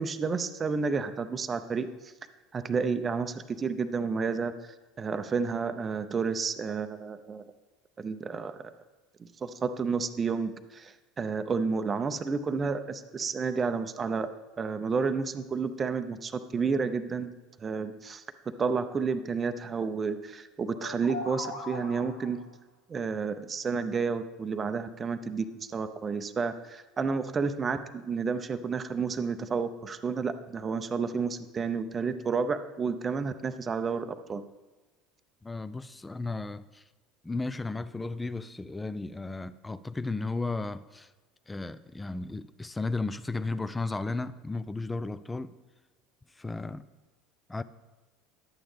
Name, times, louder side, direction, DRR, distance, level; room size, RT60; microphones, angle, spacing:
voice 1, 0.0-2.1 2.5-7.4 8.0-8.7 9.2-14.3 14.6-17.3 17.6-18.2 18.6-22.4 22.9-34.4, right 5 dB, 30° right, 9 dB, 0.6 m, -31 dB
sound 1, 20.6-22.5, left 2 dB, 60° left, 1.8 m, -40 dB
voice 2, 35.4-36.8 37.2-41.1 41.5-45.5 46.4-46.9 47.5-47.6, left 3 dB, 15° left, 15 dB, 0.4 m, -34 dB
11.0 x 8.8 x 3.4 m, 1.2 s
figure-of-eight pair, 70°, 0 cm